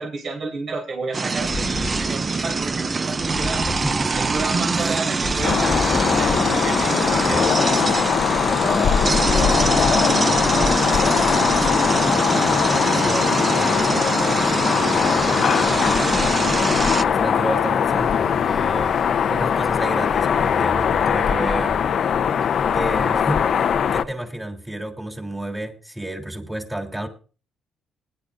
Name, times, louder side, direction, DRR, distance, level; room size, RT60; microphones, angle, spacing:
voice 1, 0.0-3.7 4.1-7.5, right 3 dB, 55° right, 2.9 m, -31 dB
sound 1, 1.1-17.0, right 4 dB, 30° right, 0.5 m, -24 dB
sound 2, 1.2-7.5, left 3 dB, 35° left, 1.3 m, -33 dB
voice 2, 3.8-4.1 4.7-4.9 8.5-16.7 17.0-18.9 19.3-21.8 22.7-27.1, right 1 dB, 10° right, 3.1 m, -31 dB
sound 3, 5.4-24.0, left 7 dB, 60° left, 0.6 m, -20 dB
20.5 x 10.5 x 2.5 m
cardioid pair, 90°, 0 cm